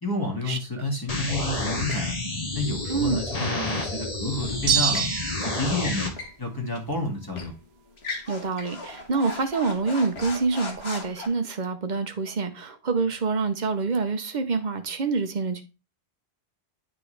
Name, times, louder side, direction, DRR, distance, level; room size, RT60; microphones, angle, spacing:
voice 1, 0.0-2.1 2.5-5.0 5.4-6.1 6.4-7.5, left 2 dB, 20° left, 2.0 m, -29 dB
sound 1, 1.1-6.1, left 2 dB, 35° left, 1.4 m, -30 dB
sound 2, 1.9-2.1 4.3-5.1 5.7-6.4 6.7-6.9 7.3-7.6 8.0-11.3, left 3 dB, 75° left, 1.6 m, -37 dB
sound 3, 4.7-5.6, right 7 dB, 70° right, 0.8 m, -24 dB
voice 2, 8.3-15.6, right 4 dB, 50° right, 1.0 m, -26 dB
9.6 x 3.7 x 3.2 m
omnidirectional pair, 1.1 m